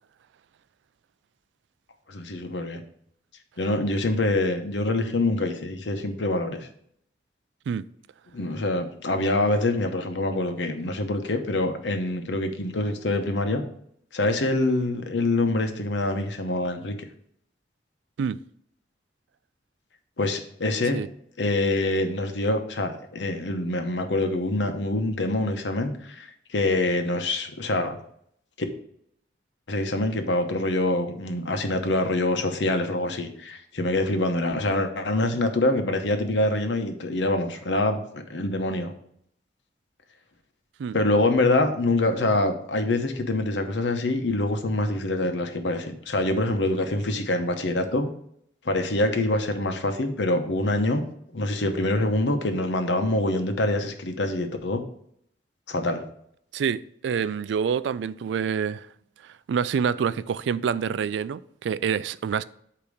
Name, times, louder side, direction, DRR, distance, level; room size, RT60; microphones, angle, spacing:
voice 1, 2.1-2.8 3.6-6.6 8.3-13.6 14.1-17.0 20.2-21.0 21.4-28.0 28.6-28.7 29.7-38.9 40.9-48.1 48.6-51.0 51.3-54.8 55.7-56.0, left 2 dB, 85° left, 0.9 m, -25 dB
voice 2, 56.5-58.9 59.2-62.4, right 7 dB, 85° right, 0.3 m, -27 dB
8.4 x 2.9 x 6.3 m
head